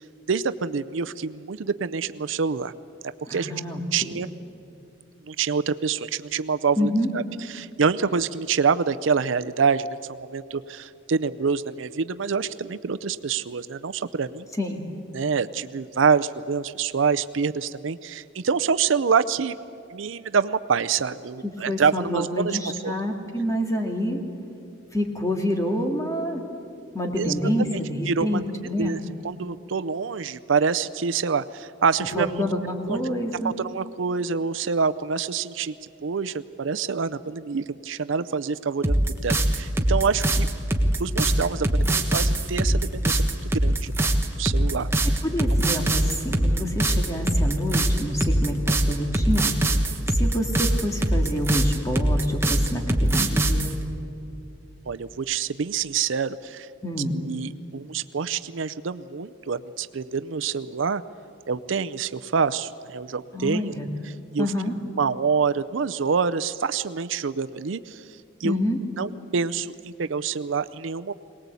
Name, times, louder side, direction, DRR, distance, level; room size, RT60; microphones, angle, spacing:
voice 1, 0.3-2.7 3.3-3.5 3.9-4.3 5.3-7.2 7.5-14.5 15.1-19.6 19.9-22.6 22.8-23.0 27.2-27.3 27.7-27.8 28.1-29.0 29.2-32.3 32.8-33.0 33.4-35.7 36.0-40.5 41.0-44.1 44.4-44.9 54.9-56.7 57.1-61.0 61.5-63.7 64.3-64.5 65.0-68.0 68.4-68.6 69.0-71.1, right 5 dB, 75° right, 13 dB, 0.5 m, -26 dB
voice 2, 3.3-4.1 6.8-7.1 14.6-14.8 21.4-24.2 24.9-26.4 26.9-29.0 32.1-33.5 45.2-53.7 56.8-57.2 63.3-63.9 64.4-64.8 68.4-68.8, equal, 15° left, 2 dB, 2.3 m, -27 dB
sound 1, 38.8-53.7, right 1 dB, 10° right, 1.3 m, -22 dB
22.5 x 19.0 x 8.3 m, 2.7 s
head